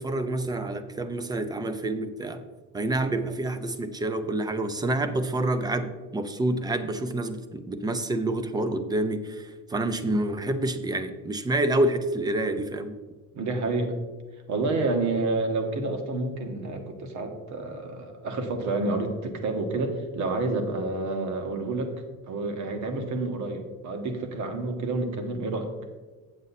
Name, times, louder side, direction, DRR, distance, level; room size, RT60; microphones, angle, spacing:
voice 1, 0.0-2.4 2.7-12.9, right 1 dB, 10° right, 10 dB, 0.5 m, -28 dB
voice 2, 13.3-14.0 14.5-21.9 22.3-25.7, right 2 dB, 55° right, 5 dB, 1.5 m, -29 dB
8.1 x 7.9 x 4.1 m, 1.3 s
cardioid pair, 145°, 34 cm